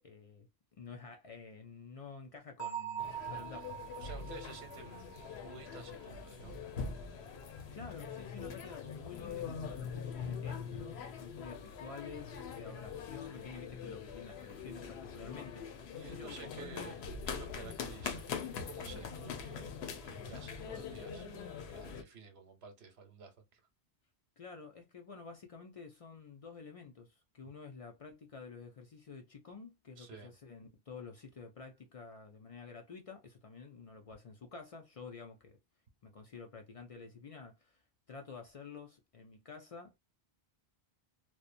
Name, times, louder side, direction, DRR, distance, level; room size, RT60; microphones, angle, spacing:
voice 1, 0.0-4.0 7.5-17.1 24.4-35.6 36.0-39.9, left 5 dB, 60° left, 0.3 m, -50 dB
Bell, 2.6-6.3, right 9 dB, 20° left, 0.9 m, -44 dB
sound 1, 3.0-22.0, left 6 dB, 75° left, 0.8 m, -43 dB
voice 2, 4.0-5.0 5.4-6.6 15.9-17.0 17.3-23.6 30.0-30.3, right 5 dB, 70° right, 1.0 m, -52 dB
2.7 x 2.1 x 2.4 m
omnidirectional pair, 1.1 m